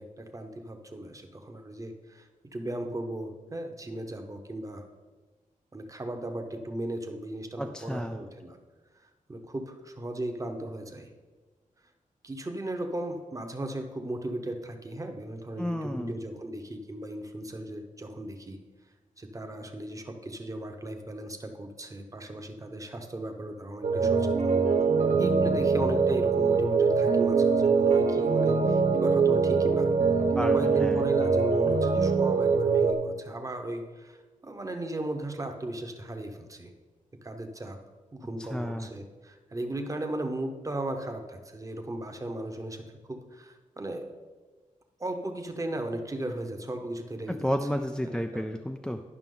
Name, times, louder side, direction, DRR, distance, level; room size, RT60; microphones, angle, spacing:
voice 1, 0.0-2.3 2.5-4.8 5.7-8.6 9.3-11.1 12.2-18.6 19.2-24.6 25.2-30.0 30.3-34.2 34.4-36.7 37.2-37.8 38.1-44.1 45.0-47.5 48.0-48.4, right 1 dB, 25° right, 4 dB, 0.9 m, -36 dB
voice 2, 7.6-8.2 15.6-16.2 30.4-31.1 38.5-38.9 47.3-49.0, equal, 5° left, 4 dB, 0.3 m, -31 dB
sound 1, 23.8-32.9, right 5 dB, 65° right, 1.0 m, -23 dB
11.0 x 5.7 x 3.8 m, 1.3 s
wide cardioid pair, 115°, 14 cm